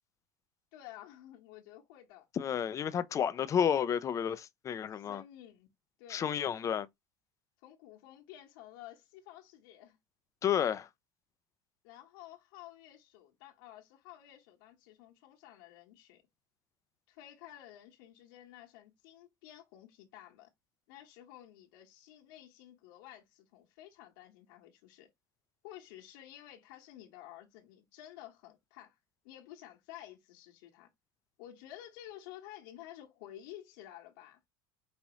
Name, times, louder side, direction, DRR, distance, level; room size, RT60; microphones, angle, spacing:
voice 1, 0.7-2.3 4.9-5.7 6.0-6.3 7.6-10.0 11.8-16.2 17.1-20.5 20.9-25.1 25.6-29.0 29.2-30.9 31.4-34.4, left 12 dB, 75° left, 1.4 m, -52 dB
voice 2, 2.3-5.2 6.1-6.9 10.4-10.9, left 8 dB, 30° left, 0.5 m, -31 dB
5.5 x 2.9 x 3.0 m
supercardioid pair, 125°, 11 cm